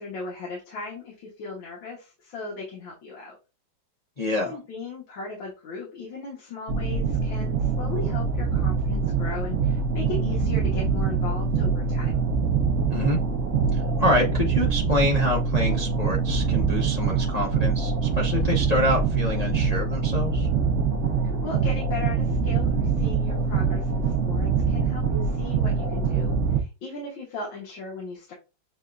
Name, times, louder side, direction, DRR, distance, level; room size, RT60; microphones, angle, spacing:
voice 1, 0.0-3.4 4.4-12.2 21.2-28.3, left 3 dB, 85° left, -3 dB, 2.0 m, -37 dB
voice 2, 4.2-4.6 12.9-13.2 13.7-20.5, left 1 dB, 70° left, -1 dB, 0.3 m, -26 dB
sound 1, 6.7-26.6, right 5 dB, 80° right, 0.6 m, -24 dB
7.2 x 2.4 x 2.2 m, 0.29 s
omnidirectional pair, 2.0 m